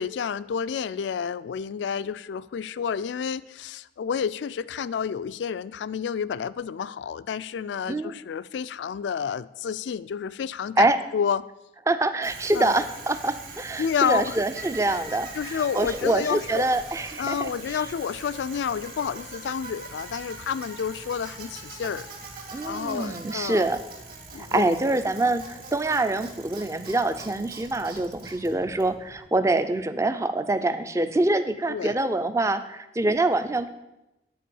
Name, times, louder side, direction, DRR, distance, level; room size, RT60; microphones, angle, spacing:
voice 1, 0.0-10.9 11.1-11.4 12.5-12.7 13.8-14.4 15.3-16.7 17.2-22.1 22.6-23.7 24.3-24.7 31.7-32.0, left 7 dB, 75° left, 17 dB, 0.3 m, -30 dB
voice 2, 11.9-17.8 22.5-23.8 24.4-33.7, right 2 dB, 15° right, 11 dB, 0.4 m, -25 dB
Bicycle, 12.2-29.3, right 3 dB, 55° right, 2.2 m, -42 dB
10.0 x 4.6 x 6.9 m, 0.94 s
head